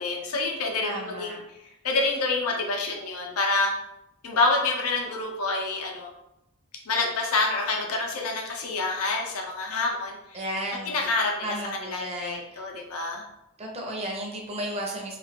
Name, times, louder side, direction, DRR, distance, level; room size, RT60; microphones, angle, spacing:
voice 1, 0.0-1.3 1.8-3.7 4.2-6.1 6.9-10.4 10.9-13.2, left 3 dB, 75° left, 1 dB, 0.6 m, -27 dB
voice 2, 0.8-1.4 10.3-11.0 11.4-12.7 13.6-15.2, right 1 dB, 30° right, -1 dB, 0.6 m, -33 dB
2.5 x 2.4 x 3.4 m, 0.86 s
head